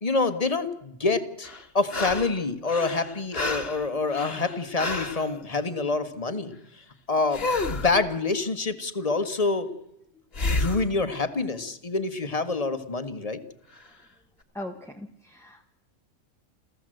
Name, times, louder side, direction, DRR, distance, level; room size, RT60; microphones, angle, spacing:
voice 1, 0.0-1.5 1.7-6.6 7.1-9.7 10.5-13.4, left 3 dB, 25° left, 10 dB, 1.4 m, -27 dB
sound 1, 1.4-2.4 2.7-5.3 7.3-7.9 10.3-10.9 13.8-13.9, left 3 dB, 40° left, 1.6 m, -30 dB
voice 2, 14.5-15.7, left 1 dB, ahead, 3 dB, 1.0 m, -39 dB
29.0 x 14.0 x 7.8 m, 0.84 s
omnidirectional pair, 1.6 m